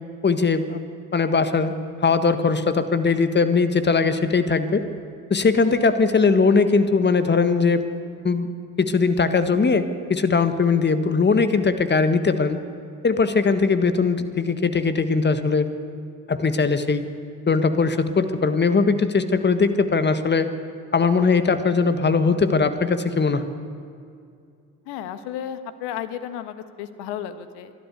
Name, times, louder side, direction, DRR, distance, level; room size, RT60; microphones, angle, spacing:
voice 1, 0.2-0.8 1.1-1.7 2.0-4.8 5.3-7.8 8.2-8.5 8.8-12.6 13.0-15.7 16.3-17.0 17.5-20.5 20.9-23.4, left 4 dB, 25° left, 10 dB, 1.5 m, -20 dB
voice 2, 24.9-27.7, left 10 dB, 65° left, 11 dB, 1.5 m, -33 dB
29.0 x 12.0 x 8.2 m, 2.4 s
hypercardioid pair, 55°, 44 cm